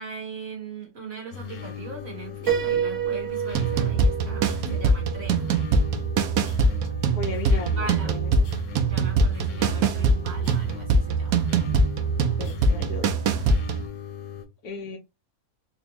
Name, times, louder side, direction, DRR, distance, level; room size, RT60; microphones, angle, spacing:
voice 1, 0.0-5.6 7.0-8.2 8.9-11.5, right 4 dB, 45° right, 1.6 m, -40 dB
sound 1, 1.3-14.5, left 9 dB, 65° left, 1.0 m, -38 dB
Piano, 2.5-6.2, right 9 dB, 60° right, 1.0 m, -29 dB
sound 2, 3.5-13.9, right 3 dB, 75° right, 1.1 m, -23 dB
voice 2, 7.1-7.8 8.0-8.3 12.4-13.1 14.6-15.0, left 3 dB, 90° left, 1.2 m, -35 dB
4.1 x 2.2 x 2.8 m
omnidirectional pair, 1.6 m